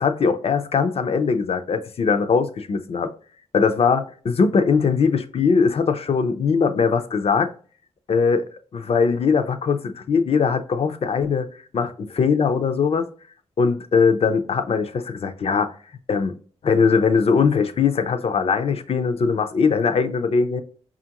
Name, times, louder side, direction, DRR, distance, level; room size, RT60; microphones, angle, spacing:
voice 1, 0.0-3.1 3.5-7.5 8.1-11.5 11.7-13.1 13.6-15.7 16.1-16.3 16.6-20.6, left 5 dB, 60° left, 0.5 m, -20 dB
5.0 x 2.4 x 2.8 m
cardioid pair, 75°, 11 cm